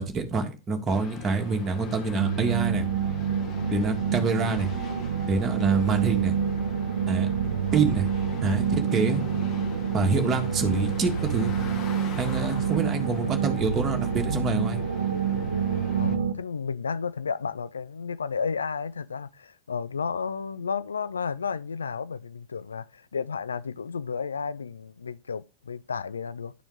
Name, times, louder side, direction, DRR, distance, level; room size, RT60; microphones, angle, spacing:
voice 1, 0.0-2.9 3.7-4.7 5.3-6.3 7.1-7.3 7.7-8.1 8.4-9.2 9.9-11.5 12.2-14.8, right 4 dB, 25° right, 1.6 m, -26 dB
sound 1, 0.9-16.2, left 6 dB, 35° left, 1.5 m, -42 dB
sound 2, 2.2-16.3, right 7 dB, 70° right, 0.7 m, -27 dB
voice 2, 15.9-26.5, left 5 dB, 70° left, 0.4 m, -32 dB
11.0 x 4.4 x 3.9 m
figure-of-eight pair, 90°, 0 cm